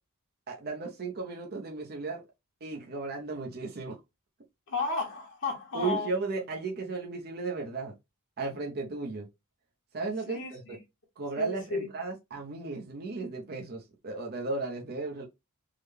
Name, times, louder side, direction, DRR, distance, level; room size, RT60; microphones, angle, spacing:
voice 1, 0.5-2.2 2.6-4.0 5.7-7.9 8.4-9.3 9.9-10.8 11.2-15.2, right 3 dB, 45° right, 0.7 m, -35 dB
voice 2, 4.7-6.1 10.3-10.5 11.4-11.9, left 3 dB, 60° left, 1.0 m, -32 dB
3.7 x 2.1 x 3.3 m
head